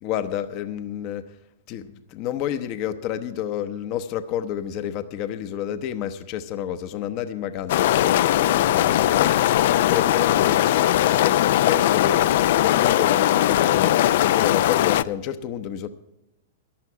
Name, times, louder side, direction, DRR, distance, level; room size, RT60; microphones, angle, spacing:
voice 1, 0.0-1.2 1.7-9.3 9.9-15.9, left 10 dB, 45° left, 10 dB, 0.8 m, -30 dB
sound 1, 7.7-15.0, left 13 dB, 65° left, 0.4 m, -19 dB
14.5 x 10.5 x 4.7 m, 0.96 s
hypercardioid pair, 120°, 0 cm